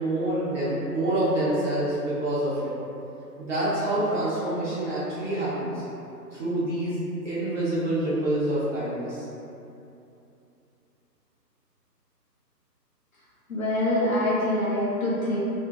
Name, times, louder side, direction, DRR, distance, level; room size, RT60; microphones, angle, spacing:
voice 1, 0.0-2.7 3.4-5.8 6.3-7.0 7.2-9.3, right 1 dB, 45° right, -10 dB, 0.8 m, -27 dB
voice 2, 13.5-15.4, left 1 dB, 55° left, -8 dB, 0.6 m, -25 dB
2.7 x 2.5 x 2.3 m, 2.7 s
figure-of-eight pair, 145°, 50 cm